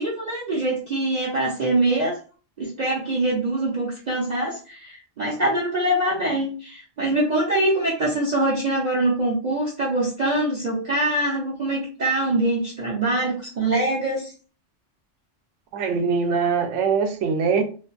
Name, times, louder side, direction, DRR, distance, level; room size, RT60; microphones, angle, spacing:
voice 1, 0.0-2.2 2.6-14.3, right 1 dB, 50° right, 0.5 m, -24 dB
voice 2, 15.7-17.6, right 5 dB, 75° right, 0.9 m, -22 dB
2.5 x 2.2 x 2.4 m
omnidirectional pair, 1.3 m